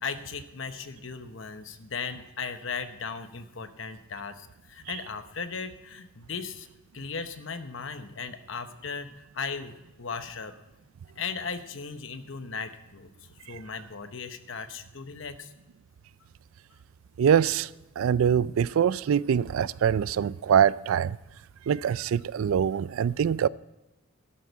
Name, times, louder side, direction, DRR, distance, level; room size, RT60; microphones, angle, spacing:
voice 1, 0.0-6.7 6.9-10.6 11.2-13.1 13.4-15.5, left 5 dB, 65° left, 0.9 m, -37 dB
voice 2, 17.2-17.7 18.0-21.2 21.7-23.5, right 8 dB, 75° right, 0.3 m, -24 dB
12.5 x 12.0 x 4.6 m
head